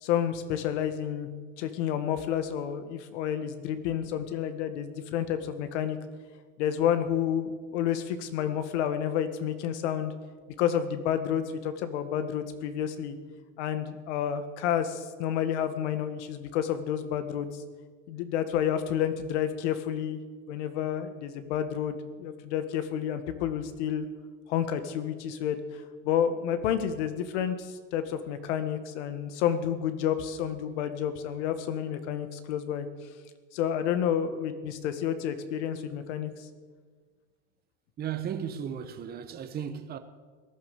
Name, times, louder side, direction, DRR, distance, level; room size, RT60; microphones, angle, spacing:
voice 1, 0.0-1.3 1.6-6.0 6.6-10.1 10.6-13.2 13.6-17.5 18.1-20.2 20.5-24.1 24.5-32.9 33.5-36.5, left 9 dB, 65° left, 1.8 m, -30 dB
voice 2, 38.0-40.0, right 8 dB, 25° right, 1.0 m, -35 dB
18.0 x 11.0 x 6.7 m
supercardioid pair, 120°, 38 cm